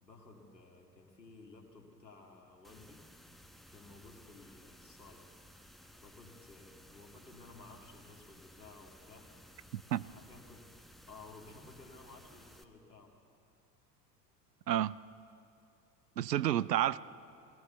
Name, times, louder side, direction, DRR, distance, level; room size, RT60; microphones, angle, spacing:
voice 1, 0.0-3.0 3.7-5.2 6.0-9.3 10.0-10.7 11.1-13.1, left 3 dB, 85° left, 2.5 m, -55 dB
sound 1, 2.6-12.6, equal, ahead, 1.0 m, -58 dB
voice 2, 9.7-10.1 14.7-15.0 16.2-17.0, right 12 dB, 80° right, 0.6 m, -30 dB
23.0 x 16.5 x 7.0 m
figure-of-eight pair, 70°, 49 cm